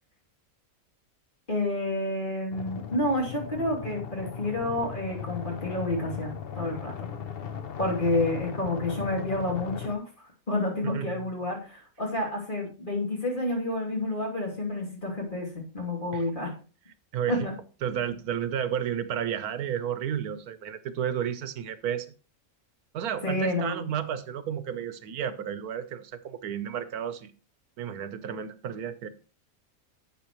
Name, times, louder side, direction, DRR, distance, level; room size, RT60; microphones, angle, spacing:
voice 1, 1.5-6.9 7.8-16.5 17.3-17.5 23.2-23.9, left 1 dB, 35° left, 3.0 m, -29 dB
sound 1, 2.5-9.9, left 7 dB, 50° left, 0.8 m, -37 dB
voice 2, 10.8-11.3 16.1-16.3 17.1-17.5 17.8-22.1 22.9-27.3 27.8-29.1, right 9 dB, 90° right, 1.3 m, -32 dB
11.5 x 8.1 x 3.0 m
omnidirectional pair, 1.5 m